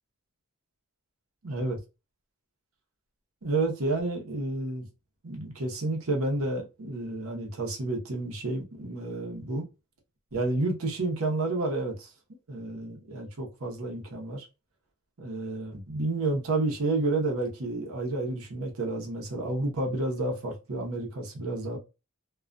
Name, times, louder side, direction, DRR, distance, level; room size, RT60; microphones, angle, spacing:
voice 1, 1.4-1.8 3.4-4.9 5.2-9.7 10.3-12.1 12.5-14.4 15.2-21.8, right 2 dB, 75° right, 0.8 m, -30 dB
2.3 x 2.2 x 2.4 m
head